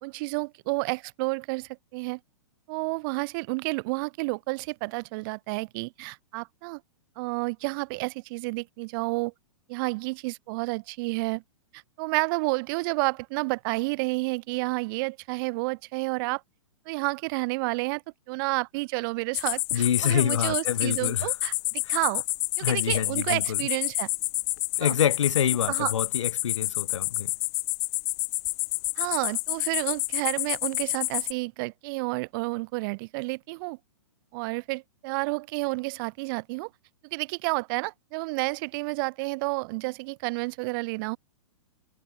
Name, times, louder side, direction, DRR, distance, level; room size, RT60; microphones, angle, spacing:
voice 1, 0.0-2.2 2.7-6.8 7.2-9.3 9.7-11.4 11.7-16.4 16.9-18.0 18.3-22.2 22.6-24.1 24.8-24.9 25.7-25.9 29.0-33.8 34.3-36.7 37.1-41.2, right 27 dB, 45° right, 1.9 m, -30 dB
Cicada Close A, 19.3-31.3, left 33 dB, 40° left, 1.6 m, -29 dB
voice 2, 19.7-21.3 21.8-21.9 22.6-23.6 24.8-27.3, left 9 dB, 70° left, 1.7 m, -27 dB
hypercardioid pair, 115°, 16 cm